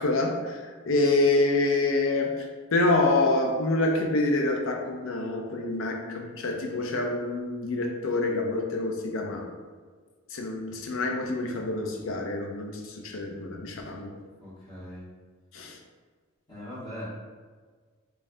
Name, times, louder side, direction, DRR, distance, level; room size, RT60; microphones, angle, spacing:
voice 1, 0.0-9.5 10.3-14.1 15.5-15.8, left 2 dB, 60° left, 2 dB, 0.5 m, -27 dB
voice 2, 14.4-15.0 16.5-17.0, left 1 dB, 20° left, -10 dB, 1.4 m, -40 dB
5.1 x 2.3 x 2.7 m, 1.5 s
head